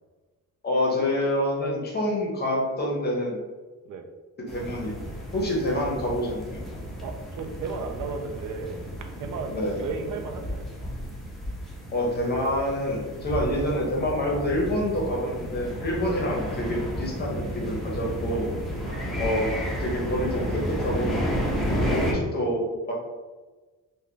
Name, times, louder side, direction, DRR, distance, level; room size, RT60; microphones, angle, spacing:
voice 1, 0.6-3.4 4.5-5.0 5.3-6.7 9.5-9.7 11.9-18.5 19.2-19.5 19.8-21.1 21.8-22.9, left 1 dB, 30° left, -2 dB, 0.7 m, -27 dB
sound 1, 4.5-22.1, equal, ahead, 0.5 m, -32 dB
voice 2, 7.0-10.7 16.0-16.2 18.8-19.0, right 4 dB, 70° right, 5 dB, 0.5 m, -35 dB
3.3 x 2.1 x 3.7 m, 1.3 s
cardioid pair, 155°, 32 cm